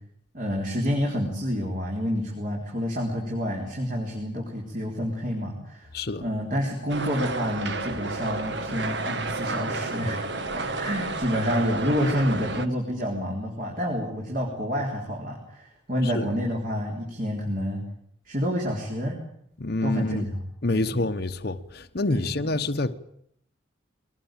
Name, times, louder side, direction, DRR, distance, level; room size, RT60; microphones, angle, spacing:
voice 1, 0.3-5.9 6.2-10.2 10.5-17.8 18.3-19.2 19.8-20.4 20.7-20.9 22.1-22.3, equal, 45° right, 4.0 m, -28 dB
voice 2, 5.9-6.2 16.0-16.2 19.6-20.2 20.6-22.9, left 2 dB, 50° left, 1.0 m, -27 dB
sound 1, 6.9-12.7, right 3 dB, 60° right, 1.5 m, -31 dB
22.0 x 19.0 x 9.1 m
head